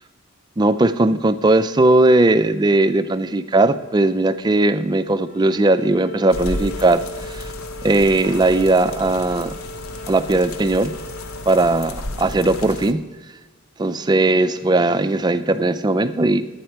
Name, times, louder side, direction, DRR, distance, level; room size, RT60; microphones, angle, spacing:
voice 1, 0.6-7.5 7.8-9.5 10.1-10.9 11.5-13.0 13.8-16.4, right 2 dB, 20° right, 12 dB, 0.3 m, -18 dB
Wind instrument woodwind instrument, 5.2-11.5, left 1 dB, 40° left, 0.9 m, -37 dB
sound 1, 6.3-12.9, left 2 dB, 70° left, 0.7 m, -33 dB
11.5 x 8.7 x 4.5 m, 1.3 s
head